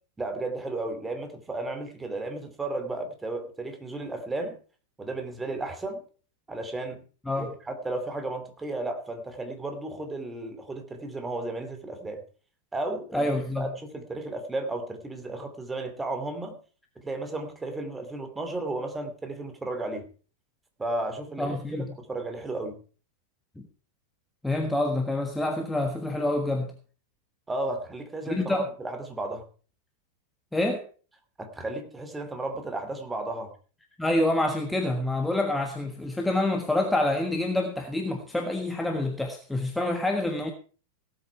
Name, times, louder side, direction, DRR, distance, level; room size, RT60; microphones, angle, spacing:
voice 1, 0.2-4.6 5.0-6.0 6.5-7.0 7.4-12.2 12.7-16.6 17.0-20.1 20.8-22.8 27.5-29.4 31.4-33.5, right 2 dB, 10° right, 6 dB, 2.6 m, -34 dB
voice 2, 13.1-13.7 21.4-21.9 23.6-23.7 24.4-26.7 28.3-28.7 30.5-30.8 34.0-40.5, left 1 dB, 5° left, 4 dB, 1.4 m, -27 dB
17.5 x 8.1 x 4.7 m, 0.39 s
figure-of-eight pair, 90°, 0 cm